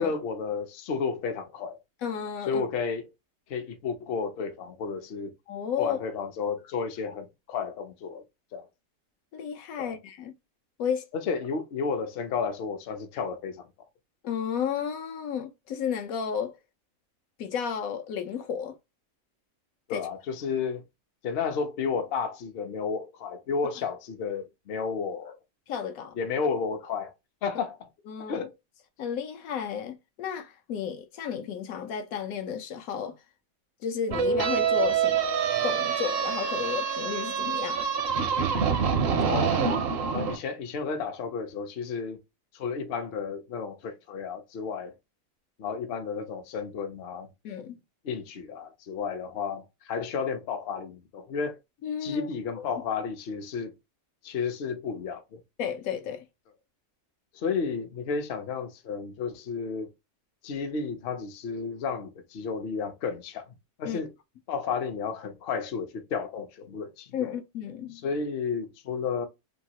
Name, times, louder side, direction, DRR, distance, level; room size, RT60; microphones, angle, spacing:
voice 1, 0.0-1.8 2.5-3.1 3.5-5.3 5.8-8.2 8.5-8.7 9.8-10.0 11.1-13.7 19.9-20.8 21.2-25.3 26.2-27.1 27.4-27.9 28.3-28.5 39.3-39.6 40.1-42.2 42.5-45.0 45.6-47.3 48.0-51.5 52.0-53.7 54.2-55.4 57.3-59.9 60.4-63.5 63.8-64.1 64.5-67.3 67.9-69.3, left 5 dB, 55° left, 0.7 m, -32 dB
voice 2, 2.0-2.7 5.5-6.0 9.3-10.3 10.8-11.0 14.2-16.6 17.4-18.8 19.9-20.1 25.7-26.1 28.1-28.4 29.0-33.2 33.8-38.0 47.4-47.8 51.8-52.3 52.6-52.7 55.6-56.3 63.8-64.0 67.1-68.0, left 8 dB, 80° left, 1.0 m, -33 dB
sound 1, 34.1-40.4, right 6 dB, 60° right, 0.6 m, -26 dB
2.9 x 2.3 x 2.7 m
omnidirectional pair, 1.5 m